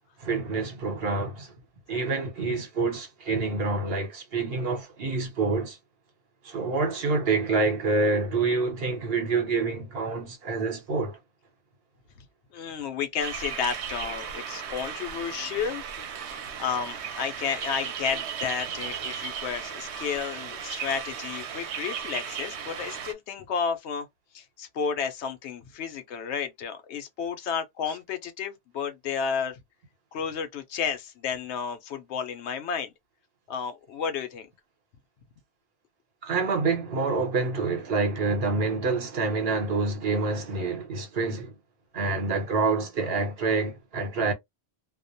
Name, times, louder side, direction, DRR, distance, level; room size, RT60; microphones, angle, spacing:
voice 1, 0.2-1.5 1.9-5.8 6.4-11.2 36.2-41.5 41.9-44.3, right 3 dB, 65° right, 1.1 m, -27 dB
voice 2, 12.5-24.1 24.3-29.6 30.1-32.9 33.5-34.5, left 6 dB, 85° left, 0.9 m, -32 dB
sound 1, 13.2-23.1, right 8 dB, 85° right, 0.9 m, -36 dB
2.4 x 2.1 x 2.6 m
omnidirectional pair, 1.1 m